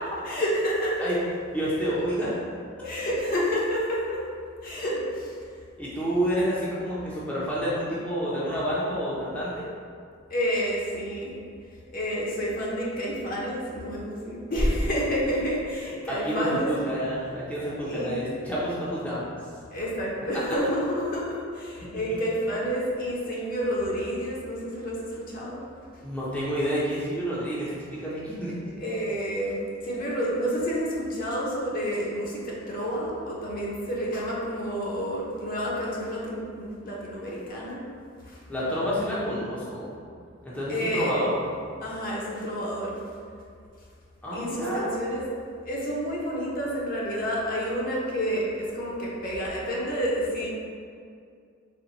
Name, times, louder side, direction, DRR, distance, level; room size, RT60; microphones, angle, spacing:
voice 1, 0.2-1.1 2.8-4.2 4.6-5.4 10.3-11.4 11.9-16.7 17.9-18.3 19.7-25.6 28.8-37.8 38.2-38.4 40.7-41.5 41.8-43.0 44.3-45.3 45.6-50.5, equal, 45° left, -5 dB, 0.7 m, -29 dB
voice 2, 1.5-2.4 5.8-9.7 16.1-19.4 26.0-28.5 38.5-39.9 40.4-41.3 44.2-44.9, equal, 5° left, -9 dB, 0.6 m, -29 dB
4.4 x 2.2 x 3.9 m, 2.3 s
head